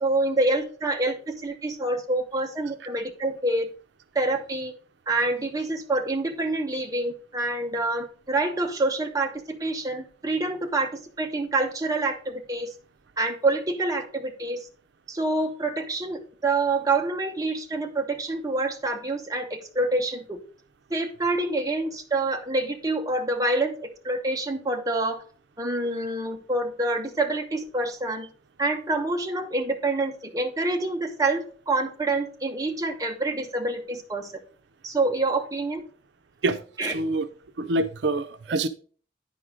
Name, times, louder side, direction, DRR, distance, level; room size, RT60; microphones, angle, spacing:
voice 1, 0.0-3.7 4.1-4.7 5.1-12.7 13.2-14.7 15.1-20.4 20.9-25.2 25.6-28.3 28.6-34.3 34.8-35.8 36.8-36.9, right 2 dB, 20° right, 0.8 m, -27 dB
voice 2, 36.4-37.2 37.6-38.7, right 2 dB, 85° right, 0.5 m, -26 dB
9.8 x 4.7 x 3.7 m
head